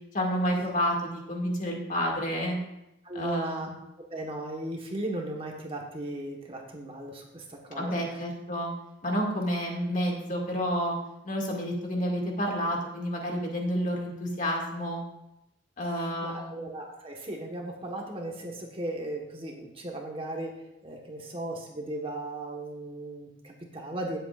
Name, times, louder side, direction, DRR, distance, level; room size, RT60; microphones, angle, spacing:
voice 1, 0.1-2.6 3.1-3.7 7.7-8.7 9.0-11.0 11.2-15.0 15.8-16.6, equal, 40° left, 0 dB, 2.1 m, -30 dB
voice 2, 3.0-3.7 4.0-8.2 15.9-20.5 20.8-24.2, right 1 dB, 30° right, 0 dB, 1.3 m, -37 dB
17.0 x 7.9 x 2.5 m, 0.86 s
head